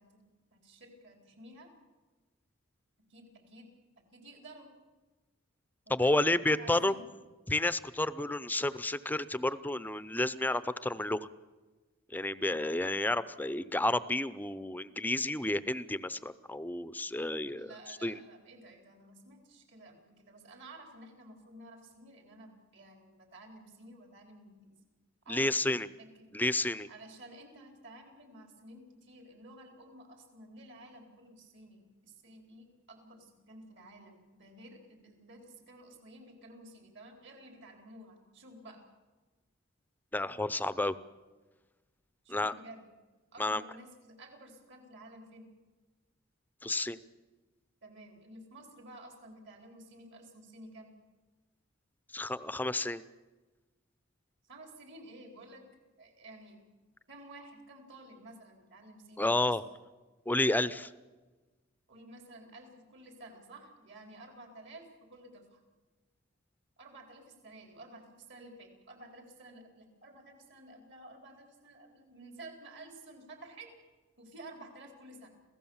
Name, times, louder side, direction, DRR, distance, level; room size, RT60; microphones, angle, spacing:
voice 1, 0.0-1.7 3.1-3.7 4.0-4.7 5.8-7.2 17.5-24.7 25.2-25.7 26.0-26.1 26.9-38.8 42.2-42.9 43.3-45.5 47.8-50.9 54.4-55.6 56.0-56.6 57.1-59.6 61.9-65.6 66.8-73.7 74.2-75.3, right 1 dB, 65° right, 3 dB, 4.3 m, -52 dB
voice 2, 5.9-6.9 7.5-11.3 12.1-17.7 18.0-18.1 25.3-25.9 26.3-26.9 40.1-41.0 42.3-42.5 43.4-43.6 46.6-47.0 52.1-53.0 59.2-59.6 60.3-60.9, left 2 dB, 10° left, 15 dB, 0.6 m, -31 dB
27.5 x 16.5 x 7.2 m, 1.3 s
head